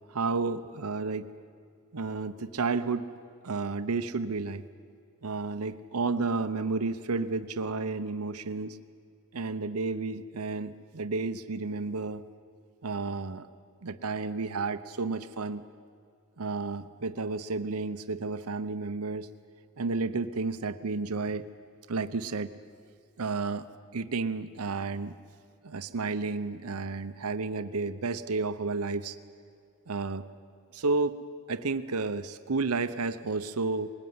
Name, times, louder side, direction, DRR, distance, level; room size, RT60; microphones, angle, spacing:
voice 1, 0.1-1.3 1.9-3.1 3.4-4.6 5.2-8.8 9.3-12.2 12.8-13.5 13.8-15.6 16.4-19.3 19.8-21.5 21.9-22.5 23.2-23.7 23.9-25.2 25.6-29.2 29.9-30.2 30.7-31.2 31.5-33.9, right 3 dB, 90° right, 11 dB, 0.8 m, -31 dB
21.5 x 19.5 x 9.5 m, 2.3 s
head